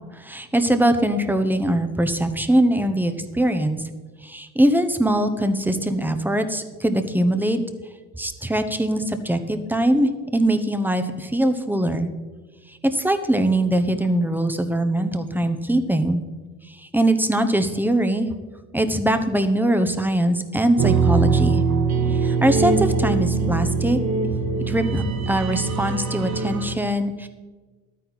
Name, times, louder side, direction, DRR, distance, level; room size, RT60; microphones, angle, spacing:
voice 1, 0.1-3.8 4.2-7.6 8.2-12.1 12.8-16.2 16.9-18.3 18.7-21.6 22.1-24.0 24.7-27.3, right 1 dB, 5° right, 8 dB, 1.0 m, -22 dB
sound 1, 20.8-26.7, right 5 dB, 60° right, 1.3 m, -22 dB
12.0 x 9.3 x 4.1 m, 1.3 s
cardioid pair, 90°, 30 cm